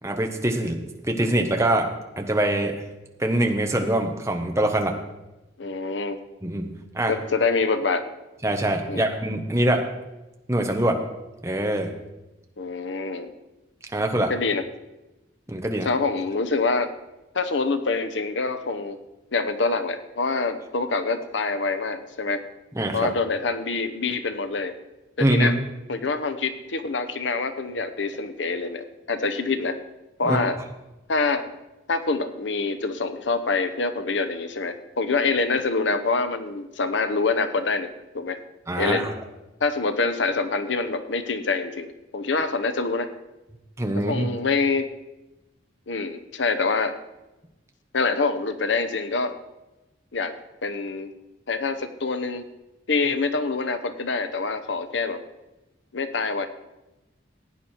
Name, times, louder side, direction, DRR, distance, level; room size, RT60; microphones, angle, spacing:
voice 1, 0.0-0.8 1.1-1.9 2.2-2.8 3.2-4.9 6.4-7.2 8.4-9.8 10.5-11.0 11.4-11.9 13.9-14.3 15.5-15.9 22.7-23.1 25.2-25.5 30.2-30.4 38.7-39.1 43.8-44.3, right 1 dB, 15° right, 3 dB, 1.2 m, -23 dB
voice 2, 5.6-6.2 7.1-8.0 8.9-9.0 12.6-13.3 14.3-14.6 15.8-16.9 17.3-19.0 19.3-22.4 22.9-24.7 25.2-25.5 25.9-29.8 30.2-30.6 31.1-31.4 31.9-37.9 38.1-38.4 38.8-39.1 39.6-43.1 44.1-44.9 45.9-46.9 47.9-49.3 50.1-50.3 50.6-51.1 51.5-52.5 52.9-55.2 55.9-56.5, left 4 dB, 80° left, 10 dB, 0.9 m, -25 dB
16.0 x 9.4 x 4.5 m, 1.0 s
head